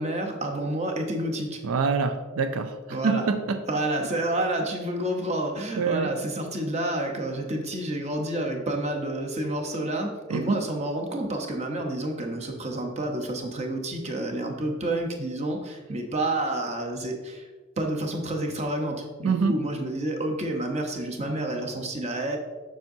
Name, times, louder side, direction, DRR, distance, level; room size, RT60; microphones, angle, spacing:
voice 1, 0.0-1.6 2.9-3.3 3.7-17.5 17.8-22.4, right 1 dB, 30° right, 2 dB, 0.9 m, -29 dB
voice 2, 1.6-2.8 3.0-3.6 5.8-6.1 10.3-10.6 19.2-19.6, right 4 dB, 90° right, 8 dB, 0.4 m, -25 dB
7.4 x 6.2 x 2.7 m, 1.3 s
head